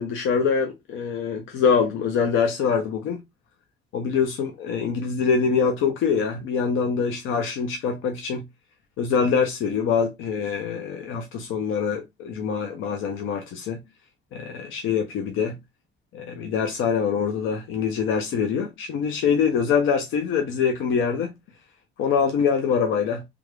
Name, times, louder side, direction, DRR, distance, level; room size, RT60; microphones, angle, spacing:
voice 1, 0.0-3.2 3.9-8.5 9.0-13.8 14.3-15.6 16.1-21.3 22.0-23.3, left 6 dB, 90° left, 0.6 m, -24 dB
3.5 x 2.4 x 3.1 m
cardioid pair, 90°, 20 cm